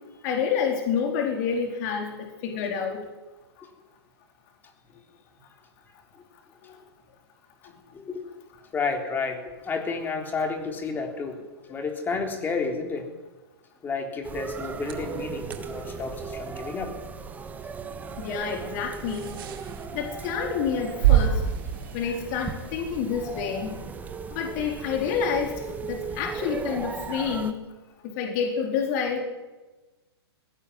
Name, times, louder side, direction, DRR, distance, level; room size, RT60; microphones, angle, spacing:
voice 1, 0.2-3.0 6.6-6.7 18.2-19.4 19.9-21.4 21.9-23.7 24.3-25.5 25.8-27.5 28.0-29.2, left 6 dB, 40° left, 3 dB, 4.1 m, -28 dB
voice 2, 8.7-11.4 11.7-13.1 13.8-16.9, left 4 dB, 15° left, 5 dB, 3.7 m, -31 dB
sound 1, 14.2-27.5, right 5 dB, 10° right, 1.5 m, -37 dB
sound 2, 14.7-23.0, right 10 dB, 55° right, 4.6 m, -30 dB
20.5 x 17.0 x 9.8 m, 1.1 s
hypercardioid pair, 145°, 14 cm